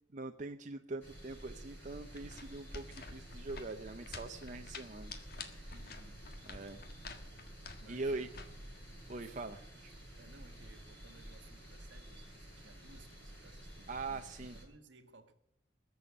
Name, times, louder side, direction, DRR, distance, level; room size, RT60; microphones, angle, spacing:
voice 1, 0.1-5.1 5.5-5.7 6.5-6.8 7.9-8.3 9.1-9.6 13.9-14.6, right 3 dB, 40° right, 0.7 m, -42 dB
sound 1, 1.0-14.6, right 1 dB, 10° left, 6.9 m, -51 dB
sound 2, 1.9-9.2, left 4 dB, 50° left, 1.6 m, -51 dB
voice 2, 5.7-6.2 7.8-8.4 9.4-15.3, right 2 dB, 70° right, 1.7 m, -61 dB
20.5 x 7.1 x 8.7 m
head